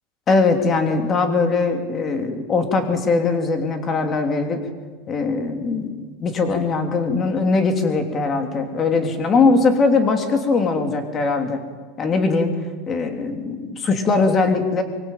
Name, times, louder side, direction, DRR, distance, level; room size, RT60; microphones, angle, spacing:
voice 1, 0.3-4.6 5.1-11.6 12.0-12.5 12.9-14.8, left 4 dB, 20° left, 5 dB, 3.1 m, -20 dB
24.0 x 23.5 x 9.2 m, 1.5 s
supercardioid pair, 165°, 0 cm